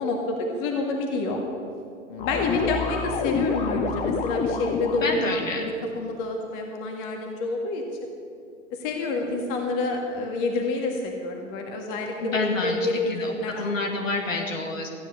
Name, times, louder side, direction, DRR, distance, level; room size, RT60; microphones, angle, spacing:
voice 1, 0.0-1.4 2.1-7.8 8.7-13.9, left 2 dB, 40° left, 2 dB, 1.9 m, -28 dB
sound 1, 2.2-5.3, left 5 dB, 20° left, 0.9 m, -27 dB
voice 2, 5.0-5.7 12.2-14.9, left 3 dB, 75° left, 1 dB, 2.5 m, -28 dB
15.0 x 9.9 x 6.6 m, 2.5 s
figure-of-eight pair, 100°, 40 cm